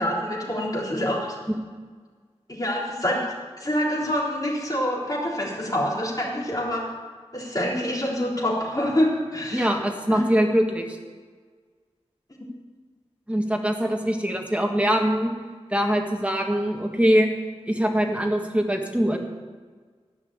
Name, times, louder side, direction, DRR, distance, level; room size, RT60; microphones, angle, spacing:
voice 1, 0.0-1.4 2.5-3.2 3.6-6.8 7.3-9.7 10.1-10.2, left 1 dB, 35° left, -4 dB, 3.7 m, -26 dB
voice 2, 9.5-11.0 13.3-15.3 15.7-17.3 17.7-19.2, equal, 10° right, 2 dB, 1.7 m, -23 dB
14.0 x 5.9 x 8.7 m, 1.5 s
wide cardioid pair, 75°, 11 cm